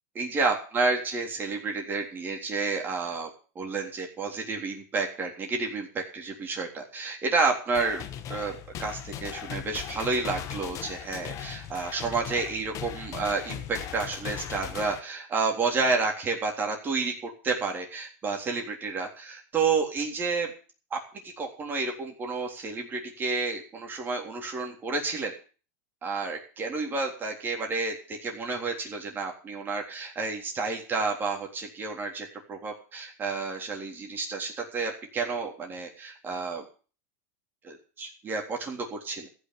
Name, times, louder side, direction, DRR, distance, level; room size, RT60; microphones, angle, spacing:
voice 1, 0.2-3.3 3.6-8.0 8.3-17.1 17.4-20.5 20.9-25.3 26.0-36.6 37.6-39.3, right 4 dB, 25° right, 2 dB, 3.6 m, -30 dB
sound 1, 7.7-15.0, left 10 dB, 40° left, 1.3 m, -38 dB
15.0 x 6.4 x 9.5 m, 0.38 s
supercardioid pair, 135°, 8 cm